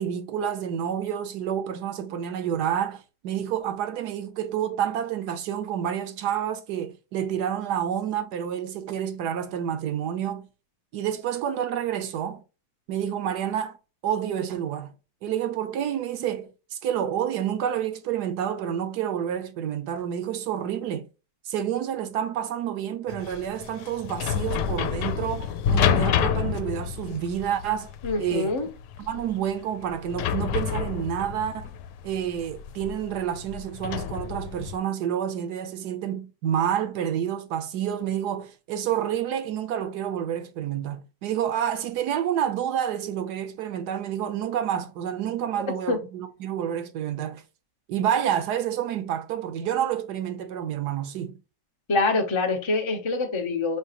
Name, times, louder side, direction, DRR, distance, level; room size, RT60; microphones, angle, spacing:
voice 1, 0.0-10.5 10.9-12.4 12.9-13.8 14.0-14.9 15.2-21.0 21.5-27.9 28.2-28.6 29.0-31.7 32.0-47.4 47.9-51.4, right 9 dB, 65° right, 1.2 m, -29 dB
sound 1, 23.1-34.8, left 8 dB, 75° left, 1.1 m, -28 dB
voice 2, 28.0-28.7 45.9-46.0 51.9-53.8, left 3 dB, 25° left, 0.6 m, -25 dB
5.8 x 3.1 x 3.0 m
omnidirectional pair, 2.0 m